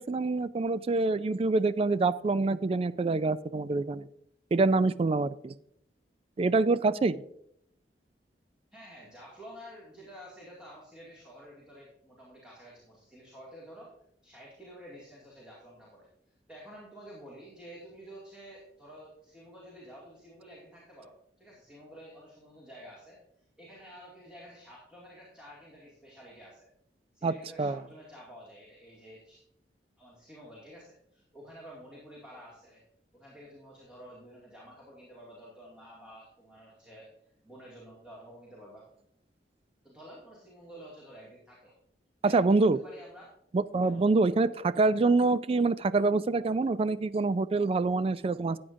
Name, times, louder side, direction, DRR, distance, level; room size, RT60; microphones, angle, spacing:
voice 1, 0.0-4.1 4.5-5.5 6.4-7.2 27.2-27.8 42.2-42.8 43.5-48.6, right 3 dB, 35° right, 16 dB, 0.3 m, -26 dB
voice 2, 8.7-13.9 14.2-16.1 16.5-23.2 23.6-26.7 27.1-29.4 30.0-32.8 33.1-38.9 39.8-41.7 42.2-43.3 43.8-44.1, equal, 5° right, -6 dB, 2.3 m, -50 dB
13.5 x 8.6 x 2.6 m, 0.74 s
head